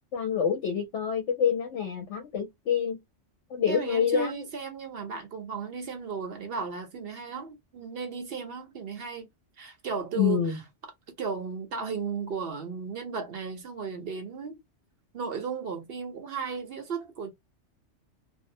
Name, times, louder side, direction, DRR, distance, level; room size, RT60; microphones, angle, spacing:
voice 1, 0.1-3.0 3.5-4.3 10.2-10.6, left 7 dB, 75° left, 0.9 m, -27 dB
voice 2, 3.7-9.3 9.6-10.6 11.2-14.6 15.1-17.3, right 5 dB, 60° right, 0.8 m, -35 dB
2.6 x 2.0 x 2.6 m
omnidirectional pair, 1.3 m